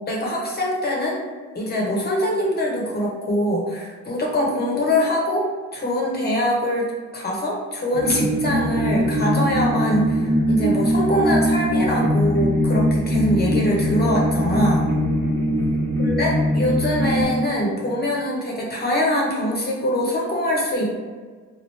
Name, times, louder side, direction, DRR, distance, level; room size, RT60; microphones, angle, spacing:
voice 1, 0.1-1.2 1.5-6.9 7.1-10.2 10.5-14.9 16.0-21.0, equal, 35° left, -2 dB, 0.7 m, -23 dB
sound 1, 7.9-17.2, equal, 85° right, 1.0 m, -21 dB
2.9 x 2.4 x 3.1 m, 1.5 s
cardioid pair, 90°, 30 cm